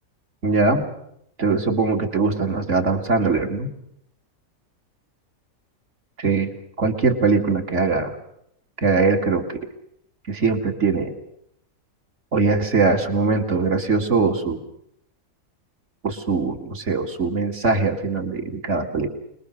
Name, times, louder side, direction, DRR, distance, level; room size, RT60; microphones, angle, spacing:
voice 1, 0.4-0.9 1.4-3.7 6.2-6.5 6.8-8.1 8.8-9.5 10.3-11.1 12.3-14.6 16.0-19.1, right 4 dB, 55° right, 4 dB, 2.6 m, -21 dB
26.0 x 21.0 x 6.6 m, 0.73 s
omnidirectional pair, 1.5 m